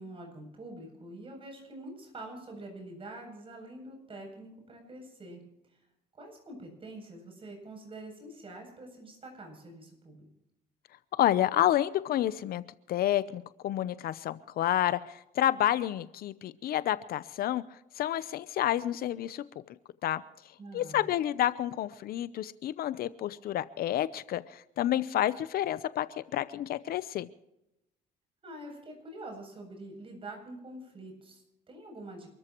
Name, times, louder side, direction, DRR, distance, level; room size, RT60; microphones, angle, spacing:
voice 1, 0.0-5.4 6.1-10.3 20.6-21.2 28.4-32.3, right 1 dB, 30° right, 2 dB, 7.9 m, -46 dB
voice 2, 11.2-12.6 12.9-17.6 18.0-19.4 20.0-20.2 20.7-26.1 26.3-27.3, left 12 dB, 65° left, 15 dB, 0.7 m, -29 dB
28.5 x 14.0 x 3.1 m, 0.89 s
cardioid pair, 110°, 17 cm